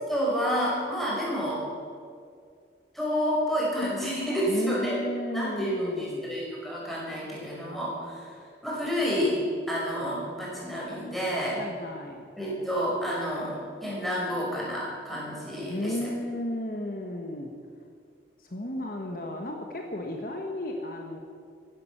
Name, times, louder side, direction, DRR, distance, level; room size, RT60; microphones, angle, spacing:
voice 1, 0.1-1.7 2.9-5.0 5.3-8.3 8.6-9.4 9.7-11.6 12.4-15.9, equal, ahead, -6 dB, 5.4 m, -29 dB
voice 2, 4.5-6.3 11.6-12.2 15.7-17.5 18.4-21.2, left 1 dB, 50° left, 2 dB, 1.4 m, -33 dB
15.0 x 13.0 x 7.3 m, 2.2 s
head